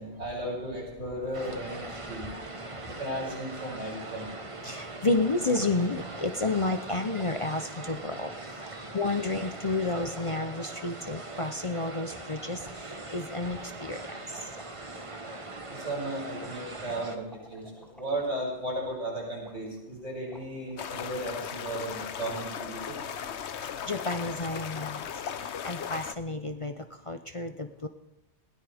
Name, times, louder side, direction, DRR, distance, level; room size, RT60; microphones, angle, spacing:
voice 1, 0.0-2.3 3.0-4.3 15.7-23.0, right 1 dB, 85° right, -4 dB, 7.3 m, -35 dB
sound 1, 1.3-17.2, right 2 dB, 30° right, 1.2 m, -41 dB
voice 2, 4.6-8.3 8.9-14.2 23.9-25.0 25.6-26.7 27.1-27.9, left 2 dB, 35° left, 7 dB, 0.6 m, -30 dB
sound 2, 5.4-8.9 9.5-12.0 12.3-12.4 12.7-15.6 15.9-16.1 16.4-18.9 19.4-19.9 20.3-21.0 21.5-22.1 22.5-23.0, equal, ahead, 2.5 m, -52 dB
sound 3, 20.8-26.1, left 8 dB, 70° left, 1.1 m, -37 dB
20.0 x 17.0 x 3.5 m, 0.92 s
omnidirectional pair, 1.2 m